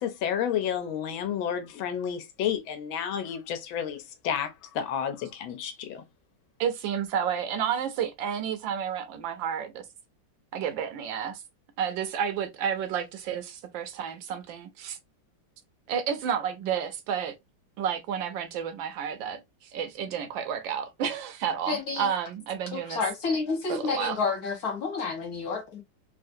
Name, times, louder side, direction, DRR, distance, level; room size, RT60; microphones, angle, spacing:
voice 1, 0.0-6.0, left 9 dB, 80° left, 1.4 m, -31 dB
voice 2, 6.6-9.8 10.5-11.4 11.8-15.0 15.9-17.3 17.8-19.4 19.7-23.0 23.7-24.2, right 8 dB, 75° right, 1.3 m, -31 dB
voice 3, 21.7-22.1 22.7-25.8, left 4 dB, 55° left, 1.5 m, -30 dB
3.6 x 2.4 x 2.6 m
omnidirectional pair, 2.1 m